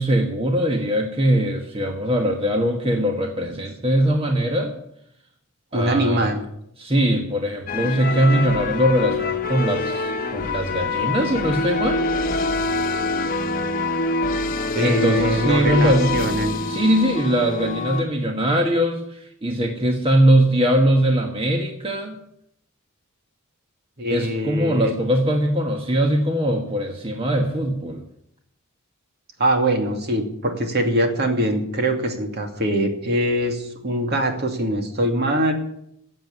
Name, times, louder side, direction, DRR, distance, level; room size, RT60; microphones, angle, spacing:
voice 1, 0.0-4.8 5.7-6.3 6.8-12.0 14.8-16.2 16.7-22.2 24.1-28.0, right 1 dB, 25° right, 3 dB, 1.4 m, -21 dB
voice 2, 5.7-6.4 14.7-16.5 24.0-24.9 29.4-35.5, right 1 dB, 55° right, 4 dB, 2.5 m, -22 dB
sound 1, 7.7-18.0, left 3 dB, 45° left, 1.1 m, -25 dB
15.0 x 7.9 x 9.5 m, 0.76 s
head